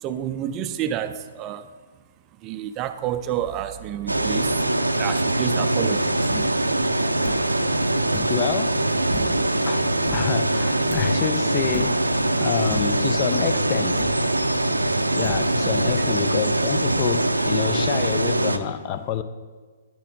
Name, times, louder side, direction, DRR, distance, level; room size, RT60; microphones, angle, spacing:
voice 1, 0.0-1.8 2.4-6.3 15.9-16.1, right 10 dB, 25° right, 11 dB, 0.4 m, -30 dB
sound 1, 4.1-18.6, right 1 dB, 90° right, 0.5 m, -23 dB
sound 2, 6.3-6.5 7.2-7.5 8.1-8.4 9.1-9.5 10.1-10.3 10.9-11.2 11.7-12.1 12.7-13.0 14.0-14.3 15.2-15.5, left 1 dB, 5° left, 1.4 m, -35 dB
voice 2, 8.3-8.9 9.6-12.1 12.4-14.1 15.1-19.2, left 9 dB, 35° left, 11 dB, 0.4 m, -27 dB
10.5 x 7.4 x 3.7 m, 1.4 s
figure-of-eight pair, 120°, 0 cm